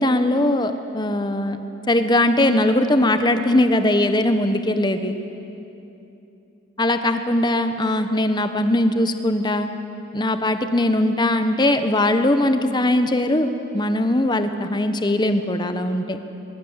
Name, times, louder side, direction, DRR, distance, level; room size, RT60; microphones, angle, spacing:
voice 1, 0.0-1.6 1.9-5.2 6.8-9.7 10.1-16.2, left 1 dB, 20° left, 8 dB, 1.1 m, -20 dB
23.5 x 21.5 x 8.1 m, 2.9 s
head